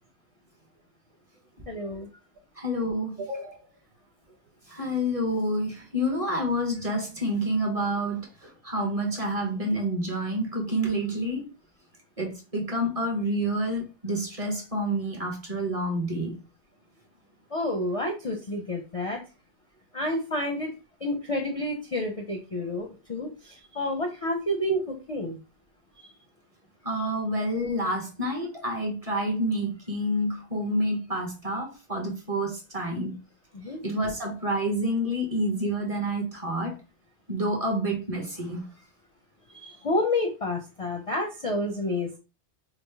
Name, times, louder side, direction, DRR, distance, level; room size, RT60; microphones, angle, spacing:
voice 1, 1.7-2.1 17.5-19.2 19.9-20.7 21.0-25.4 26.0-26.1 33.5-33.8 39.5-42.2, left 1 dB, 40° left, 2 dB, 0.5 m, -29 dB
voice 2, 2.6-3.6 4.7-11.5 12.2-16.3 26.8-33.1 33.8-36.8 37.3-38.6, equal, 35° right, 1 dB, 1.0 m, -28 dB
4.7 x 2.0 x 3.4 m, 0.30 s
omnidirectional pair, 1.2 m